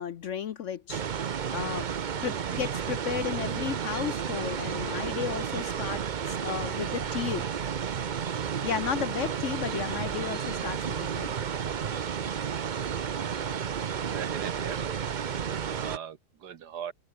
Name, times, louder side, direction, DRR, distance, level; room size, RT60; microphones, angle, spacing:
voice 1, 0.0-1.9 2.2-6.0 6.3-7.5 8.6-11.3, left 8 dB, 60° left, 0.9 m, -34 dB
sound 1, 0.9-16.0, right 7 dB, 55° right, 0.5 m, -32 dB
voice 2, 14.0-15.1 15.7-16.9, right 9 dB, 75° right, 1.8 m, -40 dB
omnidirectional pair, 1.8 m